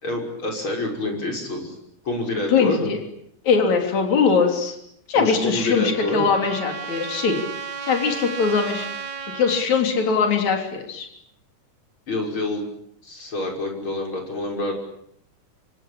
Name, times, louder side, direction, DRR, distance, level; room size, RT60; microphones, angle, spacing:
voice 1, 0.0-1.8 2.0-2.9 5.1-6.3 12.1-12.6 13.0-14.7, left 2 dB, 40° left, 2 dB, 6.6 m, -27 dB
voice 2, 2.5-3.0 3.4-4.8 5.1-7.4 7.8-8.9 9.3-11.1, left 5 dB, 60° left, 4 dB, 4.7 m, -21 dB
Trumpet, 5.1-9.7, right 5 dB, 35° right, 2.2 m, -34 dB
26.5 x 24.5 x 8.8 m, 0.73 s
omnidirectional pair, 3.6 m